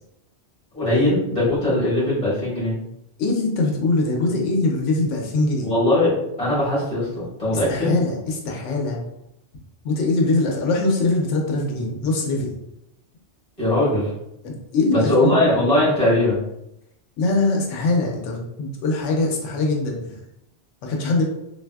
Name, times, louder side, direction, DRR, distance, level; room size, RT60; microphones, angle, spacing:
voice 1, 0.7-2.7 5.6-7.9 13.6-14.1 14.9-16.4, left 1 dB, 35° left, -8 dB, 1.4 m, -20 dB
voice 2, 3.2-5.7 7.7-9.0 9.8-12.6 14.4-15.4 17.2-20.2 20.8-21.2, left 2 dB, 90° left, 0 dB, 1.0 m, -22 dB
3.3 x 2.6 x 2.2 m, 0.84 s
omnidirectional pair, 1.2 m